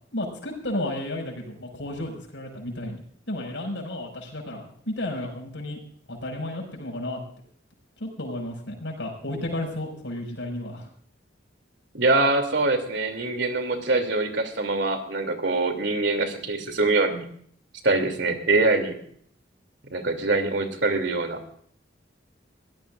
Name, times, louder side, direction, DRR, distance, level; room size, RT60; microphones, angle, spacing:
voice 1, 0.1-5.8 6.1-7.2 8.0-10.9, left 1 dB, 75° left, 1 dB, 6.1 m, -33 dB
voice 2, 11.9-17.3 17.8-19.0 19.9-21.4, right 2 dB, 70° right, 6 dB, 3.0 m, -24 dB
23.0 x 17.5 x 2.6 m, 0.63 s
head